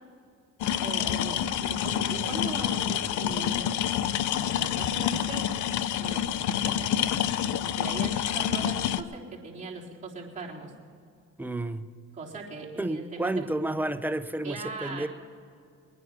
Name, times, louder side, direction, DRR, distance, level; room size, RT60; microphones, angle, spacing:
sound 1, 0.6-9.0, left 10 dB, 75° left, 0.7 m, -28 dB
voice 1, 0.8-3.8 4.4-5.5 6.0-10.7 12.1-13.5 14.4-15.1, right 3 dB, 25° right, 3.9 m, -40 dB
sound 2, 1.5-5.6, right 4 dB, 40° right, 1.8 m, -46 dB
voice 2, 11.4-11.9 12.8-15.1, right 1 dB, 5° right, 0.7 m, -31 dB
22.0 x 9.8 x 5.9 m
cardioid pair, 90°, 30 cm